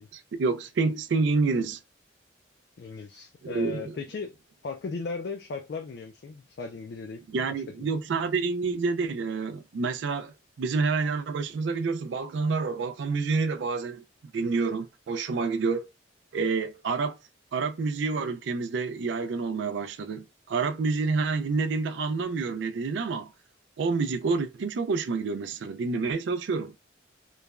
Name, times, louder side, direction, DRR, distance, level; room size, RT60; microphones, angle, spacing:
voice 1, 0.1-1.8 3.4-3.9 7.3-14.0 14.3-15.8 16.3-17.2 17.5-23.3 23.8-26.7, right 4 dB, 70° right, 0.3 m, -28 dB
voice 2, 2.8-4.4 4.6-7.2 7.5-7.9, left 4 dB, 55° left, 0.3 m, -37 dB
3.1 x 2.1 x 2.3 m
head